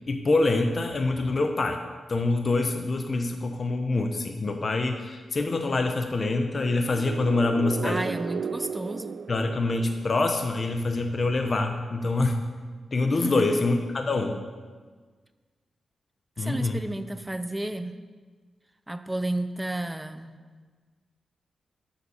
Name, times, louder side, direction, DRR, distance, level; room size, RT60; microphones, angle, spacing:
voice 1, 0.1-1.8 2.1-8.0 9.3-12.4 12.9-14.4 16.4-16.8, left 2 dB, 35° left, 4 dB, 0.7 m, -25 dB
sound 1, 6.7-10.5, right 6 dB, 65° right, 0.4 m, -35 dB
voice 2, 7.8-9.2 13.2-13.6 16.4-17.9 18.9-20.4, right 1 dB, 10° right, 10 dB, 0.5 m, -32 dB
10.5 x 6.9 x 7.1 m, 1.5 s
wide cardioid pair, 175°, 0 cm